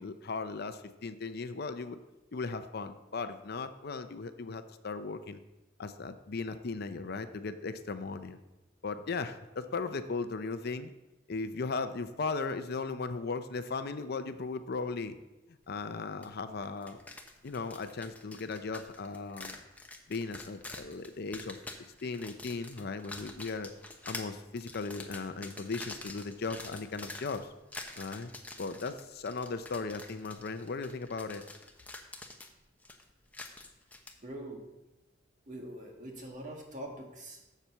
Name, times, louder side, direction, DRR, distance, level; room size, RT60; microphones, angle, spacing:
voice 1, 0.0-2.0 2.3-5.4 5.8-8.4 8.8-10.9 11.3-15.2 15.7-17.0 17.4-19.6 20.1-21.6 22.0-23.7 24.0-27.5 28.0-28.3 28.6-31.4, left 4 dB, 55° left, 10 dB, 0.6 m, -37 dB
sound 1, 16.2-16.3 16.6-34.1, left 2 dB, 10° left, 0.8 m, -47 dB
voice 2, 34.2-34.6 35.5-37.5, right 1 dB, 40° right, 0 dB, 1.8 m, -43 dB
7.4 x 6.8 x 6.9 m, 1.0 s
head